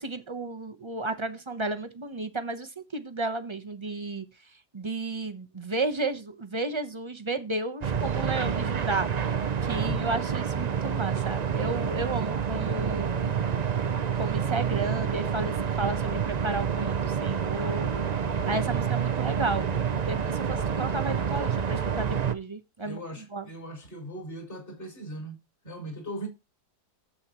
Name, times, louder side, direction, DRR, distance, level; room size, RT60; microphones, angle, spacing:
voice 1, 0.0-4.2 4.7-9.1 9.6-13.3 14.2-17.9 18.5-19.7 20.0-23.5, right 2 dB, 25° right, 0.7 m, -33 dB
sound 1, 7.8-22.3, right 7 dB, 90° right, 0.3 m, -28 dB
voice 2, 9.7-10.1 22.8-26.3, right 1 dB, 35° left, 6.3 m, -39 dB
11.5 x 8.2 x 3.0 m
omnidirectional pair, 1.8 m